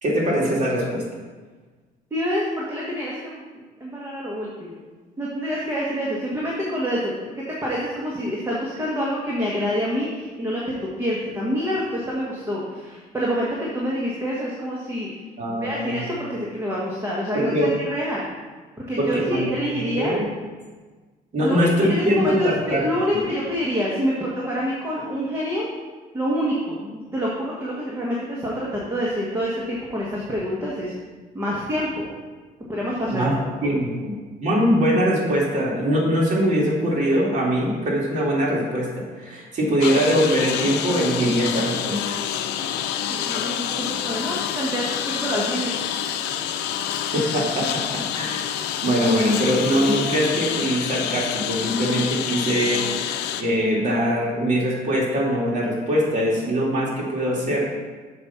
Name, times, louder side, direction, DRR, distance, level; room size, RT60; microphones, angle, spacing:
voice 1, 0.0-1.0 15.4-16.1 17.3-17.7 19.0-20.2 21.3-22.8 23.1-23.2 33.0-33.4 33.6-34.1 34.4-42.2 46.5-46.7 47.1-48.5 48.8-52.8 53.4-57.7, equal, 45° right, -4 dB, 2.6 m, -22 dB
voice 2, 2.1-3.4 3.8-4.8 5.2-15.1 15.5-18.3 18.9-20.2 21.4-25.7 26.1-30.9 31.3-32.1 32.7-33.3 33.6-33.8 43.1-45.8, equal, 15° right, -5 dB, 1.5 m, -27 dB
Engine, 39.8-53.4, left 10 dB, 90° left, 0.5 m, -27 dB
6.8 x 5.2 x 5.8 m, 1.4 s
cardioid pair, 110°, 17 cm